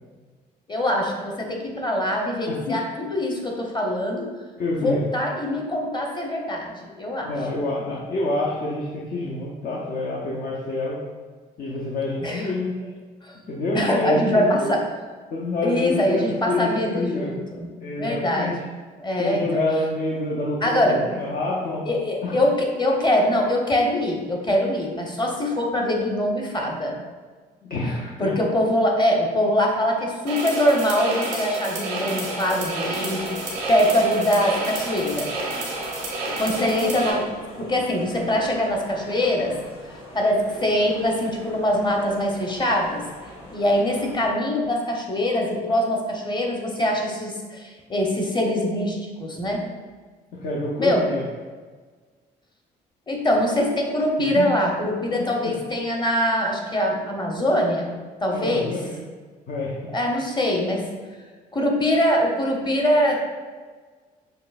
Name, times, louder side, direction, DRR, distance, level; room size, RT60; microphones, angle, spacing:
voice 1, 0.7-4.3 4.7-7.3 12.2-12.5 13.2-13.4 13.7-14.8 15.6-18.5 19.0-19.4 20.6-21.0 21.8-27.0 28.2-33.3 33.7-35.3 36.4-39.5 40.1-43.0 43.5-49.6 50.8-51.0 53.1-58.8 59.9-60.8 61.5-63.2, left 1 dB, 20° left, 0 dB, 1.0 m, -23 dB
voice 2, 2.5-2.8 4.6-5.0 7.2-11.0 11.6-12.7 13.5-14.7 15.3-17.3 17.8-18.5 19.2-21.8 22.2-22.3 27.6-28.3 50.4-51.2 54.2-54.5 55.4-55.5 58.3-59.0 59.5-59.9, left 2 dB, 45° left, -4 dB, 0.7 m, -27 dB
sound 1, 30.3-37.1, right 2 dB, 90° right, 0.8 m, -30 dB
sound 2, 32.1-44.3, equal, 70° left, 1.0 m, -43 dB
6.5 x 2.2 x 2.5 m, 1.4 s
hypercardioid pair, 50°, 20 cm